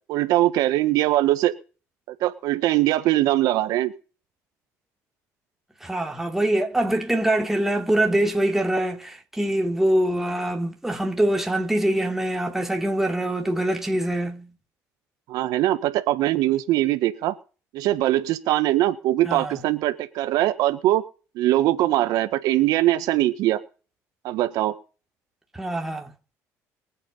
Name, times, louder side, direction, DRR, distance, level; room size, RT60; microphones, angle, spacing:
voice 1, 0.1-1.5 2.2-3.9 15.3-17.3 17.7-21.0 21.3-23.6 24.2-24.7, right 15 dB, 80° right, 1.6 m, -21 dB
voice 2, 5.8-14.5 19.2-19.6 25.5-26.1, right 1 dB, 5° right, 3.1 m, -24 dB
23.5 x 8.6 x 5.6 m
cardioid pair, 115°, 6 cm